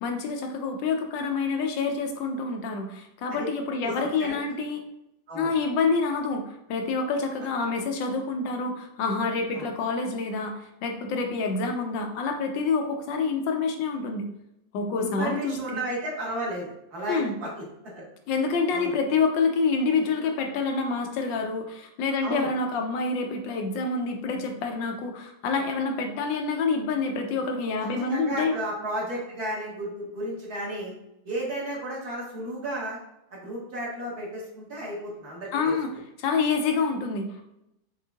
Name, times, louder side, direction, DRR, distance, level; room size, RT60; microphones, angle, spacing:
voice 1, 0.0-4.8 5.3-6.4 6.7-14.3 14.7-15.8 17.1-17.3 18.3-28.5 35.5-35.9 36.2-37.4, left 4 dB, 80° left, 4 dB, 1.4 m, -27 dB
voice 2, 3.8-4.4 5.3-5.5 9.5-9.7 15.0-17.6 17.9-18.0 18.7-18.9 22.2-22.5 27.8-30.9 31.3-33.0 33.3-35.8, right 1 dB, 60° right, -4 dB, 1.8 m, -33 dB
5.6 x 3.4 x 2.3 m, 0.84 s
omnidirectional pair, 2.0 m